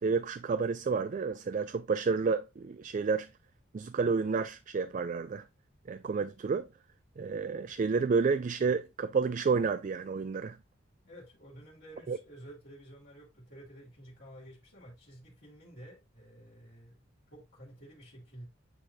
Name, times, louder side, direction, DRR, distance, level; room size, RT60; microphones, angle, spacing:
voice 1, 0.0-3.3 3.7-5.4 5.9-6.7 7.2-10.6 12.1-12.2, right 5 dB, 40° right, 0.3 m, -30 dB
voice 2, 11.0-17.0 17.3-18.4, right 1 dB, 55° left, 2.6 m, -51 dB
8.9 x 3.9 x 2.7 m
head